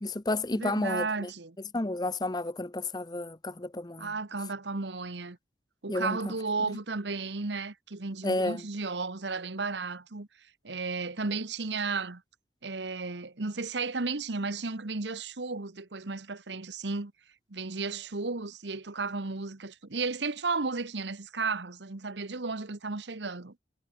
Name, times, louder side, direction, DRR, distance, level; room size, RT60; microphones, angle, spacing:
voice 1, 0.0-1.3 1.7-4.1 5.9-6.2 8.2-8.6, left 2 dB, 25° left, 0.8 m, -31 dB
voice 2, 0.5-1.6 4.0-5.4 5.8-10.3 10.6-12.2 12.6-17.1 17.5-23.5, right 4 dB, 80° right, 1.3 m, -34 dB
head